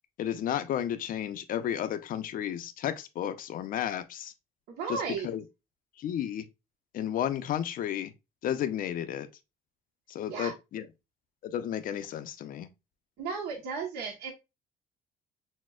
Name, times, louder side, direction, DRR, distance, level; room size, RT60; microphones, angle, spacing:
voice 1, 0.2-4.3 4.9-5.4 6.0-6.5 6.9-8.1 8.4-9.3 10.1-10.9 11.4-12.7, left 10 dB, 55° left, 0.5 m, -32 dB
voice 2, 4.7-5.3 10.3-10.5 13.2-14.3, right 5 dB, 75° right, 1.0 m, -34 dB
6.2 x 2.1 x 2.3 m
cardioid pair, 110°, 17 cm